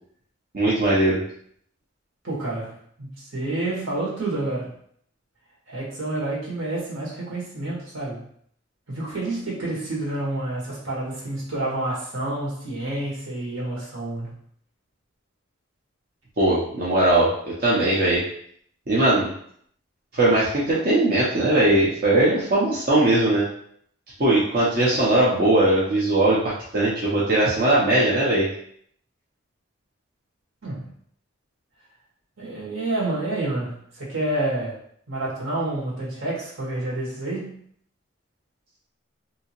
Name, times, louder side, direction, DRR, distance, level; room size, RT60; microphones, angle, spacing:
voice 1, 0.5-1.2 16.4-18.2 18.9-19.3 20.1-23.4 24.2-28.5, right 1 dB, 45° right, -7 dB, 0.7 m, -20 dB
voice 2, 2.2-4.7 5.7-8.3 8.9-14.4 30.6-30.9 32.4-34.8 35.1-37.6, right 2 dB, 75° right, -5 dB, 1.5 m, -29 dB
3.3 x 2.8 x 2.9 m, 0.65 s
head